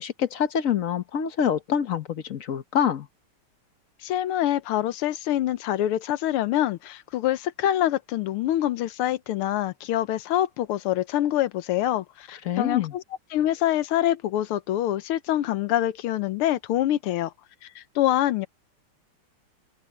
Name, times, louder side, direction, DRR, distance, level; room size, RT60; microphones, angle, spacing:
voice 1, 0.0-3.1 12.4-12.9, left 8 dB, 50° left, 1.1 m, -26 dB
voice 2, 4.0-13.0 13.3-17.3 17.7-18.5, left 13 dB, 80° left, 1.7 m, -25 dB
open air
omnidirectional pair, 2.4 m